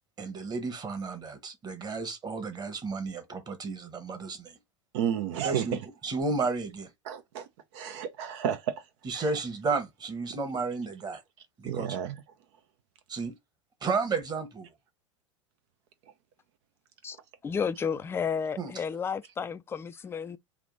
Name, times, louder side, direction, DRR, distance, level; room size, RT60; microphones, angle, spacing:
voice 1, 0.2-4.6 5.4-5.8 6.0-6.9 9.0-11.2 11.6-11.9 13.1-13.3 13.8-14.7 18.6-18.7, right 4 dB, 25° right, 1.1 m, -32 dB
voice 2, 4.9-5.7 7.1-7.5 7.7-8.8 9.1-9.3 11.6-12.1, right 9 dB, 60° right, 0.6 m, -31 dB
voice 3, 17.4-20.4, left 6 dB, 15° left, 0.4 m, -32 dB
3.4 x 2.5 x 3.8 m
hypercardioid pair, 95°, 17 cm